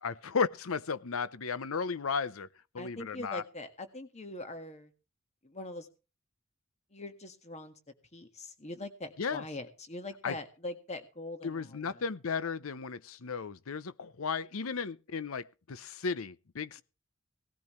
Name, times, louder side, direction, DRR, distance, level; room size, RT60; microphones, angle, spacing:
voice 1, 0.0-2.5 2.7-3.4 9.2-9.4 10.2-10.3 11.4-16.8, left 5 dB, 85° left, 0.7 m, -34 dB
voice 2, 2.8-4.9 5.4-5.9 6.9-7.7 8.1-12.0, left 2 dB, 35° left, 1.7 m, -42 dB
18.0 x 14.0 x 3.2 m
head